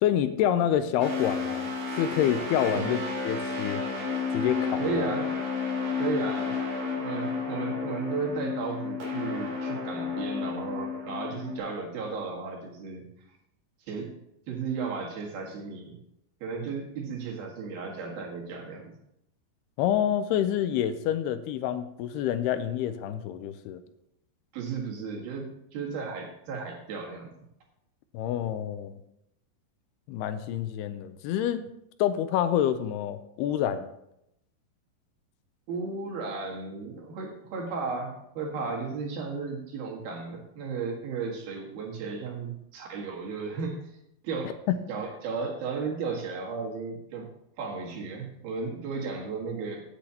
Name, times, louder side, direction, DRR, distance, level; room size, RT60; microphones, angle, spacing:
voice 1, 0.0-3.8 4.3-5.1 19.8-23.8 28.1-29.0 30.1-31.6 32.0-33.9 44.7-44.9, left 10 dB, 85° left, 11 dB, 2.6 m, -27 dB
sound 1, 1.0-11.6, left 4 dB, 40° right, 4.7 m, -31 dB
voice 2, 4.8-5.4 6.0-6.5 7.0-13.1 13.9-14.2 14.5-16.0 16.4-18.9 24.5-27.3 35.7-44.0 44.2-44.5 44.9-47.3 47.6-49.8, right 4 dB, 65° right, 0 dB, 3.4 m, -34 dB
16.5 x 8.3 x 2.9 m, 0.80 s
omnidirectional pair, 4.7 m